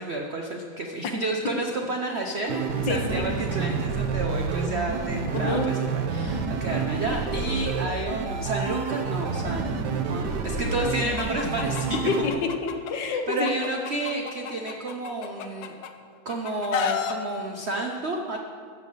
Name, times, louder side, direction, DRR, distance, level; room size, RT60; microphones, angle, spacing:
voice 1, 0.0-2.6 2.9-9.7 10.1-12.0 13.3-15.7 16.2-18.4, right 2 dB, 85° right, 1 dB, 0.5 m, -30 dB
sound 1, 2.4-12.3, right 5 dB, 60° right, 1.3 m, -28 dB
voice 2, 5.3-5.7 12.1-13.5, left 4 dB, 65° left, 5 dB, 1.4 m, -27 dB
Chicken rooster, 11.2-12.9 13.3-15.9 16.3-17.1, left 8 dB, 90° left, 1.7 m, -31 dB
16.0 x 5.5 x 6.5 m, 2.1 s
omnidirectional pair, 2.3 m